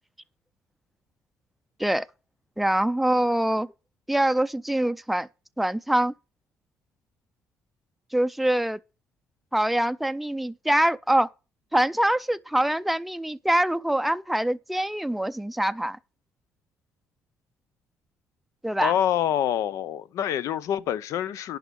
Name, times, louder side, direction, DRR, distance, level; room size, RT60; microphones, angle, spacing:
voice 1, 2.6-3.7 4.1-5.3 5.6-6.1 8.1-8.8 9.5-11.3 11.7-16.0 18.6-18.9, right 1 dB, ahead, 0.4 m, -24 dB
voice 2, 18.8-21.6, left 10 dB, 75° left, 0.7 m, -26 dB
10.5 x 5.7 x 5.3 m
cardioid pair, 120°, 5 cm